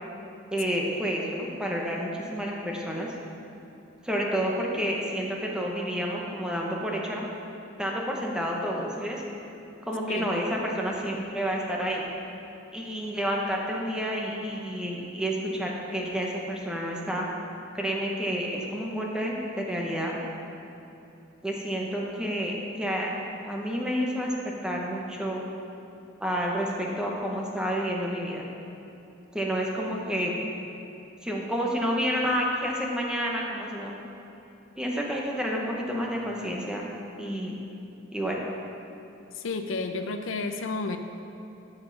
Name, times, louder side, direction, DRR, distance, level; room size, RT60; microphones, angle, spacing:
voice 1, 0.5-3.1 4.0-7.3 7.8-9.2 9.8-12.1 12.7-17.3 17.7-20.2 21.4-23.1 23.4-25.4 26.2-28.4 29.3-30.4 31.2-33.9 34.8-36.8 37.2-37.6 38.1-38.4, equal, 5° right, -2 dB, 1.0 m, -29 dB
voice 2, 39.4-41.0, left 3 dB, 75° left, 7 dB, 0.5 m, -31 dB
13.5 x 5.4 x 4.0 m, 2.9 s
head